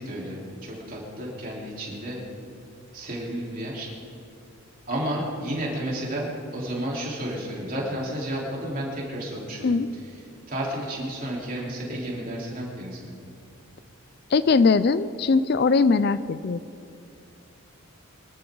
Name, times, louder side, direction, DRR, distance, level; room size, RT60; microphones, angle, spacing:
voice 1, 0.0-2.2 2.9-3.9 4.9-9.8 10.5-13.1, right 1 dB, 40° right, -4 dB, 3.9 m, -32 dB
voice 2, 14.3-16.6, left 4 dB, 45° left, 15 dB, 0.4 m, -20 dB
24.0 x 14.0 x 3.9 m, 2.5 s
head